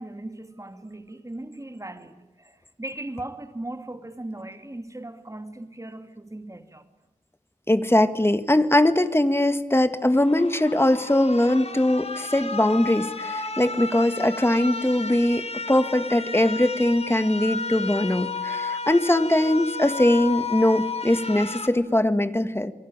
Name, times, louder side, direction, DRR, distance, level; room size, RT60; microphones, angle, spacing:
voice 1, 0.0-6.8, right 1 dB, 25° right, 2.7 m, -38 dB
voice 2, 7.7-22.7, left 1 dB, 20° left, 1.8 m, -21 dB
sound 1, 10.1-21.7, left 4 dB, 50° left, 2.4 m, -33 dB
28.0 x 23.5 x 8.9 m
wide cardioid pair, 80°, 14 cm